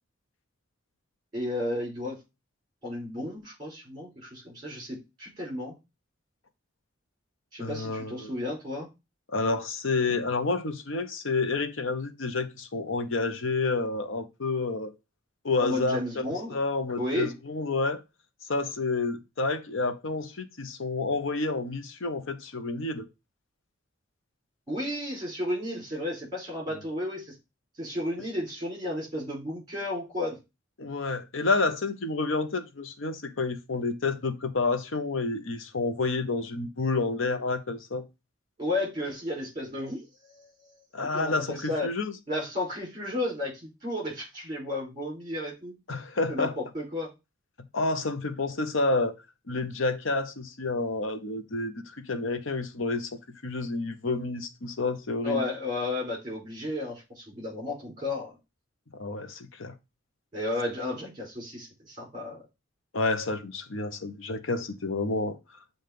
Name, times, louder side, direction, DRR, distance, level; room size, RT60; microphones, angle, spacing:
voice 1, 1.3-2.2 2.8-5.7 7.5-8.9 15.6-16.6 17.0-17.3 24.7-27.2 27.8-30.4 38.6-40.0 40.3-40.5 41.1-41.9 42.3-45.7 46.3-47.1 55.2-58.3 60.3-62.4, left 1 dB, 20° right, 4.6 m, -33 dB
voice 2, 7.6-8.3 9.3-14.9 15.4-16.2 16.5-18.0 18.5-23.0 30.8-38.1 40.9-42.1 45.9-46.5 47.7-49.2 49.5-53.1 53.4-55.5 58.9-59.7 62.9-65.4, left 3 dB, 75° left, 0.9 m, -29 dB
7.6 x 2.6 x 5.1 m
head